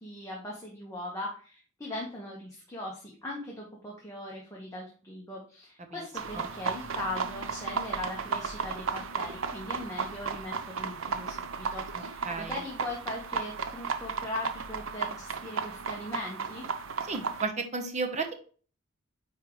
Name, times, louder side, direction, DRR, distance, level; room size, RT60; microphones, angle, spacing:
voice 1, 0.0-16.6, left 1 dB, 15° left, -3 dB, 1.2 m, -40 dB
sound 1, 6.1-17.4, right 5 dB, 70° right, 0.6 m, -34 dB
voice 2, 11.9-12.6 17.1-18.3, right 4 dB, 35° right, 6 dB, 1.0 m, -34 dB
9.2 x 3.7 x 3.1 m, 0.41 s
head